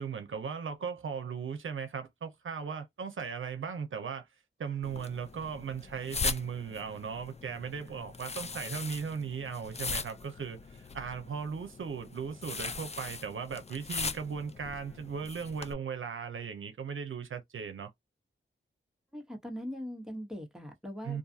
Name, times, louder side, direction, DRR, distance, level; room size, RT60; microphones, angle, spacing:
voice 1, 0.0-4.3 4.6-17.9 21.0-21.2, right 6 dB, 75° right, 0.6 m, -37 dB
sound 1, 4.8-15.7, left 4 dB, 30° left, 0.4 m, -40 dB
voice 2, 19.1-21.2, equal, 5° right, 0.9 m, -41 dB
2.5 x 2.3 x 2.7 m
cardioid pair, 50°, 21 cm